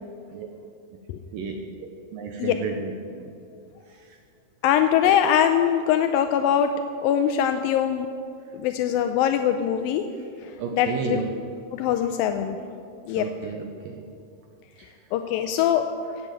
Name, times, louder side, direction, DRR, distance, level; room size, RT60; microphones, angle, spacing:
voice 1, 1.3-2.9 3.2-3.4 3.9-4.2 10.6-11.3 13.2-14.0 14.8-14.9, right 6 dB, 70° right, 3 dB, 2.3 m, -33 dB
voice 2, 4.6-6.7 7.0-8.1 8.5-10.1 10.4-11.2 11.7-12.6 13.1-13.3 15.1-15.9, left 9 dB, 85° left, 7 dB, 2.1 m, -22 dB
17.5 x 8.5 x 7.7 m, 2.5 s
omnidirectional pair, 4.7 m